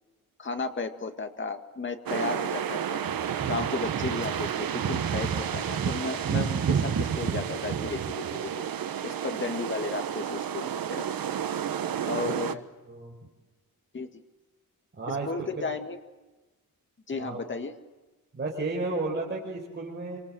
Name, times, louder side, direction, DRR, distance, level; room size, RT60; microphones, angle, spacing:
voice 1, 0.4-3.0 3.4-8.5 9.0-11.1 12.1-12.6 13.9-14.1 15.3-16.0 17.1-17.7, left 4 dB, 35° left, 6 dB, 2.0 m, -34 dB
sound 1, 2.1-12.5, right 9 dB, 75° right, 1.4 m, -32 dB
sound 2, 3.1-8.5, right 7 dB, 50° right, 1.7 m, -31 dB
voice 2, 12.2-12.6 12.8-13.3 15.0-15.7 17.1-17.4 18.3-20.2, right 3 dB, 30° right, -2 dB, 4.9 m, -33 dB
28.5 x 25.5 x 7.8 m, 1.1 s
wide cardioid pair, 150°, 35 cm